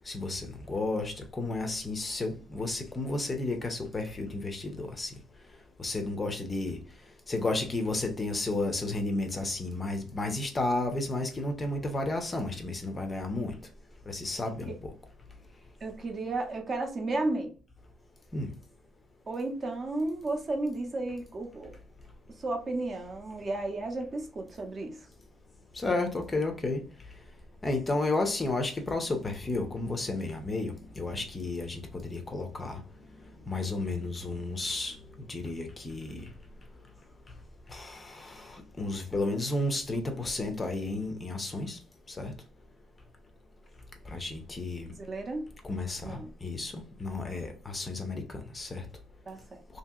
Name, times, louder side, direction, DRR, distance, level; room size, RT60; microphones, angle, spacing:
voice 1, 0.1-5.1 5.8-6.8 7.3-13.6 14.1-14.9 18.3-18.5 25.7-26.8 27.6-32.8 33.5-35.0 35.3-36.3 37.7-41.8 42.1-42.3 44.1-44.9 45.6-48.9, left 2 dB, 20° left, 0.6 m, -32 dB
voice 2, 15.8-17.5 19.3-21.8 22.3-25.1 45.0-45.5 46.0-46.3 49.3-49.6, right 2 dB, 35° right, 0.6 m, -33 dB
2.8 x 2.7 x 2.3 m
cardioid pair, 140°, 0 cm